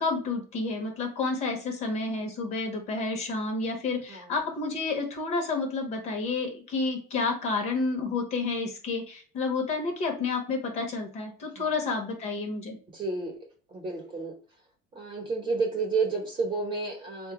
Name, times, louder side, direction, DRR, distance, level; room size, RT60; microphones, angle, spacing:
voice 1, 0.0-12.8, left 3 dB, 35° left, 3 dB, 0.8 m, -30 dB
voice 2, 12.9-13.3 13.7-14.3 14.9-17.3, right 4 dB, 25° right, 2 dB, 0.9 m, -30 dB
4.4 x 2.2 x 2.9 m, 0.41 s
cardioid pair, 175°, 19 cm